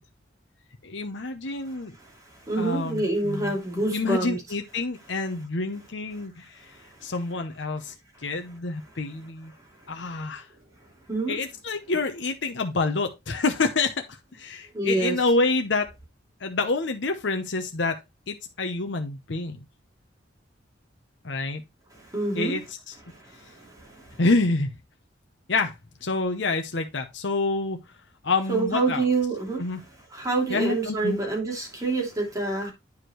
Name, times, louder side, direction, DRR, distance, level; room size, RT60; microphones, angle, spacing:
voice 1, 0.8-2.0 2.6-3.6 3.9-6.7 7.0-7.9 8.2-9.5 9.9-10.5 11.3-15.9 16.4-18.0 18.3-19.6 21.2-21.6 22.3-22.6 22.9-23.0 24.2-24.7 25.5-25.7 26.0-27.8 28.2-29.1 29.6-29.8 30.5-31.2, left 3 dB, 70° left, 0.9 m, -27 dB
voice 2, 2.0-4.4 6.7-7.1 11.1-11.3 14.7-15.2 21.9-22.6 23.1-24.2 28.5-29.6 30.1-32.7, right 3 dB, 20° right, 2.8 m, -27 dB
9.5 x 4.9 x 3.1 m
head